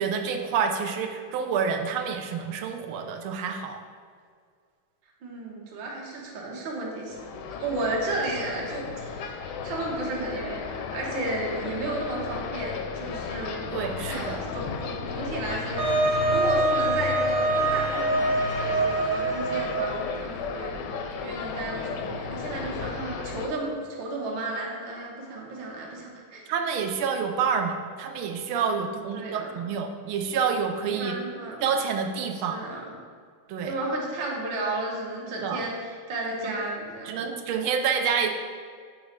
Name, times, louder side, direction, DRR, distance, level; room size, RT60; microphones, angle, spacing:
voice 1, 0.0-3.8 13.7-14.4 26.5-31.2 31.6-32.6 33.5-33.7 35.4-35.7 36.4-36.6 37.0-38.3, right 6 dB, 85° right, 4 dB, 1.5 m, -28 dB
voice 2, 5.2-7.3 7.6-13.7 14.0-20.7 21.2-26.4 28.9-29.7 30.9-31.6 32.5-32.9 33.6-37.3, right 2 dB, 70° right, -2 dB, 1.8 m, -33 dB
sound 1, 7.1-23.5, left 5 dB, 75° left, 1.0 m, -34 dB
Wind instrument woodwind instrument, 15.8-20.1, right 2 dB, 55° right, 1.6 m, -25 dB
7.3 x 3.2 x 5.0 m, 2.1 s
omnidirectional pair, 2.2 m